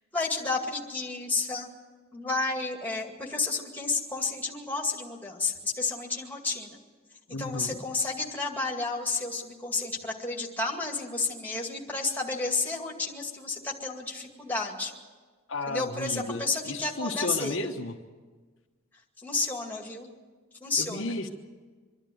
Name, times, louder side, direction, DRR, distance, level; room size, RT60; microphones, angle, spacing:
voice 1, 0.1-1.7 2.1-6.8 7.3-14.9 15.7-17.6 19.2-20.1 20.6-21.1, left 3 dB, 10° left, 0 dB, 2.2 m, -31 dB
voice 2, 7.3-7.8 15.5-17.9 20.8-21.3, left 2 dB, 60° left, 4 dB, 1.2 m, -33 dB
25.0 x 12.0 x 9.4 m, 1.4 s
head